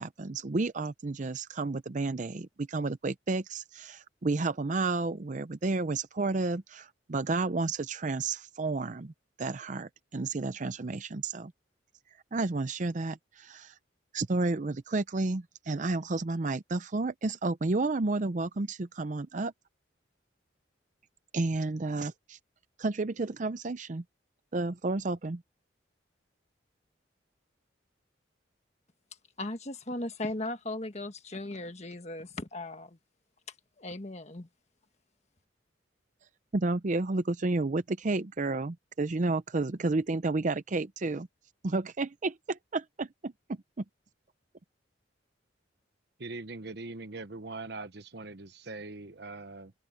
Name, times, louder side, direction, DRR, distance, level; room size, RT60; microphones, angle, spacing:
voice 1, 0.0-9.1 9.4-11.5 12.3-13.7 14.1-19.5 21.3-22.4 22.8-24.0 24.5-25.4 36.5-41.3 41.6-43.8, right 3 dB, 40° right, 0.6 m, -31 dB
voice 2, 29.4-33.0 33.8-34.5, left 2 dB, 35° left, 1.5 m, -37 dB
voice 3, 46.2-49.7, right 3 dB, 60° right, 1.2 m, -41 dB
head